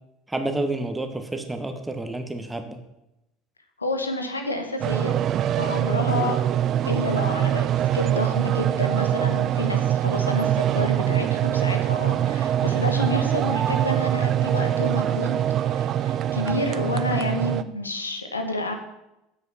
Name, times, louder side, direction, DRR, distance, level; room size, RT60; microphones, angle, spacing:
voice 1, 0.3-2.8, right 2 dB, 10° right, 7 dB, 1.5 m, -29 dB
voice 2, 3.8-5.2 5.6-6.4 6.8-18.8, left 2 dB, 90° left, 5 dB, 1.3 m, -29 dB
sound 1, 4.8-17.6, right 11 dB, 45° right, 0.5 m, -23 dB
9.6 x 8.0 x 5.7 m, 0.90 s
figure-of-eight pair, 70°, 0 cm